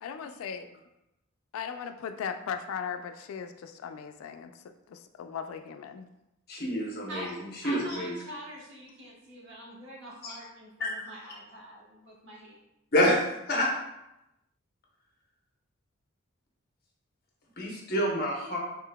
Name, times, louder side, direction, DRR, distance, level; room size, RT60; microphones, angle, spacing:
voice 1, 0.0-0.8 1.5-6.1, left 7 dB, 85° left, 11 dB, 0.3 m, -38 dB
voice 2, 6.5-8.1 10.2-10.4 10.8-10.9 12.9-13.2 13.5-13.7 17.6-18.6, equal, 50° left, -2 dB, 0.8 m, -27 dB
voice 3, 7.6-12.6, equal, 65° right, -4 dB, 1.1 m, -44 dB
3.7 x 3.4 x 2.2 m, 0.89 s
head